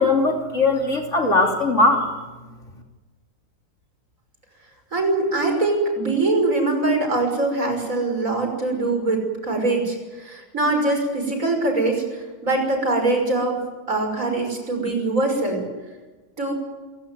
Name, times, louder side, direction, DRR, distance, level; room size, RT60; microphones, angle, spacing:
voice 1, 0.0-2.1, left 3 dB, 45° left, 2 dB, 3.5 m, -19 dB
voice 2, 4.9-15.6 16.4-16.5, right 2 dB, 50° right, 3 dB, 6.4 m, -23 dB
28.0 x 17.0 x 9.3 m, 1.3 s
omnidirectional pair, 1.8 m